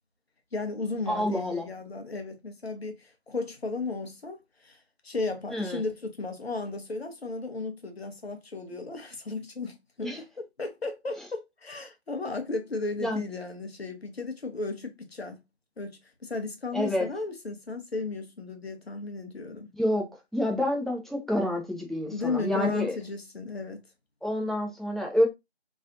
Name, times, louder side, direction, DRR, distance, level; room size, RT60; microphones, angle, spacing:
voice 1, 0.5-15.4 15.8-19.7 22.1-23.9, left 3 dB, 65° left, 0.9 m, -35 dB
voice 2, 1.1-1.7 5.5-5.8 10.0-10.2 13.0-13.2 16.7-17.1 19.7-22.9 24.2-25.3, left 1 dB, ahead, 0.3 m, -28 dB
3.2 x 2.4 x 2.5 m
figure-of-eight pair, 165°, 33 cm